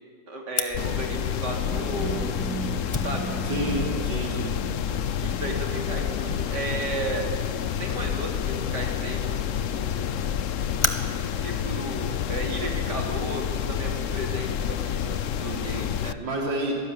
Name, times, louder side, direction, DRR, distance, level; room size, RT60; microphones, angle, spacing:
voice 1, 0.3-2.3 3.0-3.4 5.2-7.3 7.8-9.2 9.7-10.1 11.3-16.2, right 1 dB, 65° right, 1 dB, 4.1 m, -34 dB
Fire, 0.6-13.1, left 2 dB, 20° left, 1.2 m, -37 dB
sound 1, 0.7-16.1, left 9 dB, 55° left, 1.0 m, -29 dB
sound 2, 1.7-7.2, right 5 dB, ahead, 2.5 m, -38 dB
voice 2, 3.4-4.6 15.4-16.7, right 1 dB, 85° right, -1 dB, 4.4 m, -30 dB
25.0 x 19.0 x 9.9 m, 2.2 s
omnidirectional pair, 1.9 m